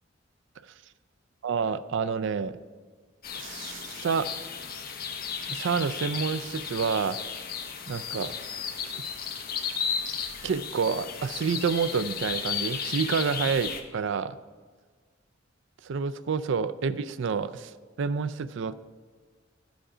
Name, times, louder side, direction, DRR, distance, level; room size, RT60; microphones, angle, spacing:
voice 1, 1.4-2.6 3.3-4.3 5.5-7.2 7.9-8.3 8.9-9.0 10.4-14.4 15.8-18.7, right 5 dB, 70° right, 14 dB, 0.4 m, -28 dB
sound 1, 3.2-13.8, left 6 dB, 50° left, 0.9 m, -34 dB
13.0 x 5.2 x 4.9 m, 1.5 s
head